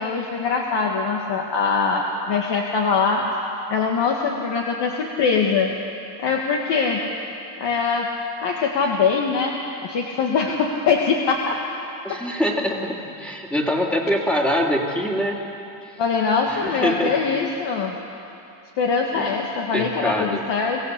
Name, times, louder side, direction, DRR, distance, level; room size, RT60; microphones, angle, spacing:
voice 1, 0.0-3.3 3.7-5.7 6.2-7.0 7.6-8.1 8.4-9.6 9.8-11.6 12.1-12.2 16.0-18.0 18.8-20.8, left 5 dB, 60° left, 0 dB, 1.9 m, -22 dB
voice 2, 12.0-15.4 16.5-17.2 19.1-19.4 19.7-20.4, equal, ahead, -1 dB, 2.7 m, -24 dB
23.0 x 15.5 x 8.2 m, 2.8 s
cardioid pair, 125°, 49 cm